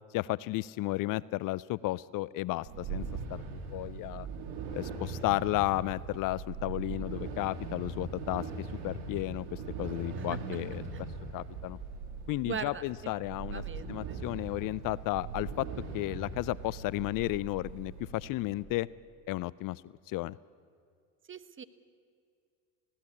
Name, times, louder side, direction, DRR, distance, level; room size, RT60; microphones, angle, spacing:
voice 1, 0.1-4.3 4.7-10.8 11.3-11.8 12.3-13.6 13.9-15.7 15.9-18.9 19.3-19.8 20.1-20.4, left 18 dB, 55° left, 21 dB, 0.5 m, -33 dB
sound 1, 2.6-18.6, right 4 dB, 65° right, 2.9 m, -40 dB
voice 2, 12.4-12.8 13.5-14.2 21.3-21.6, right 7 dB, 30° right, 13 dB, 1.1 m, -40 dB
19.5 x 16.0 x 8.5 m, 2.3 s
hypercardioid pair, 80°, 41 cm